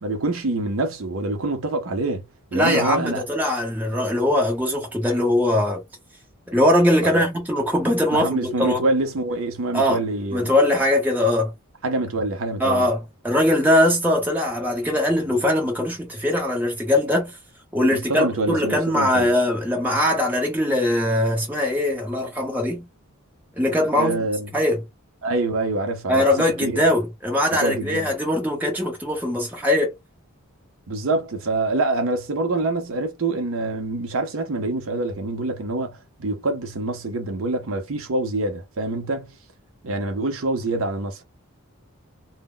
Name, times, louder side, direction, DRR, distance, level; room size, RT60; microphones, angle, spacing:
voice 1, 0.0-2.2 2.5-3.2 7.0-7.3 8.1-10.5 11.8-12.9 18.1-19.3 23.9-24.5 25.2-26.8 27.5-28.1 30.9-39.3 39.8-41.2, right 2 dB, 65° right, 0.6 m, -25 dB
voice 2, 2.5-5.8 6.5-8.8 9.7-10.0 10.3-11.5 12.6-17.4 17.7-22.9 23.6-24.2 24.5-24.8 26.1-29.9, left 1 dB, 10° right, 0.8 m, -21 dB
2.1 x 2.0 x 3.7 m
head